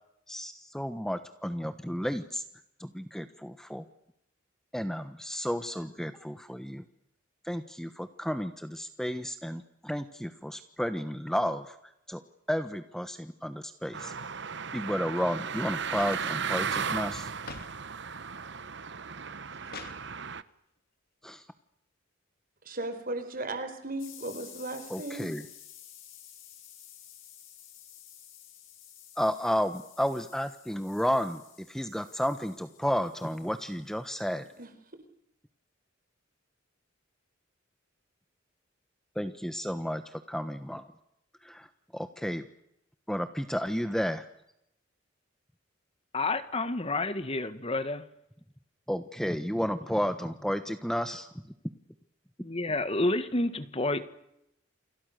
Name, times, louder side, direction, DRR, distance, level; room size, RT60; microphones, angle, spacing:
voice 1, 0.3-2.4 2.8-3.8 4.7-6.8 7.4-12.2 12.5-14.3 14.7-17.3 21.2-21.5 24.9-25.5 29.2-34.5 39.1-40.9 41.4-42.5 43.1-44.3 48.9-51.5, equal, 5° left, 1.2 m, -32 dB
sound 1, 13.9-20.4, right 6 dB, 60° right, 1.1 m, -35 dB
sound 2, 16.0-17.8 18.1-18.7 19.2-20.0 21.2-21.3, left 4 dB, 50° left, 3.1 m, -47 dB
voice 2, 22.6-25.3 34.6-34.7, right 2 dB, 45° right, 4.5 m, -36 dB
sound 3, 24.0-34.6, left 10 dB, 85° left, 8.0 m, -52 dB
voice 3, 46.1-48.0 52.4-54.0, left 2 dB, 30° left, 1.6 m, -29 dB
29.5 x 27.0 x 6.7 m
head